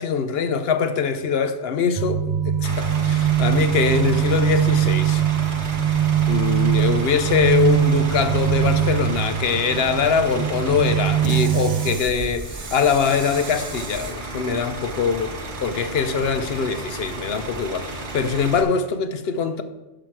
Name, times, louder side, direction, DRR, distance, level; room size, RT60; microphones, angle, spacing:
voice 1, 0.0-5.2 6.3-15.3 15.6-19.6, left 6 dB, 65° left, 0.8 m, -23 dB
sound 1, 2.0-12.0, right 10 dB, 45° right, 0.3 m, -21 dB
Bus / Idling, 2.6-18.6, right 2 dB, 70° right, 1.5 m, -33 dB
10.0 x 6.2 x 4.6 m
omnidirectional pair, 1.2 m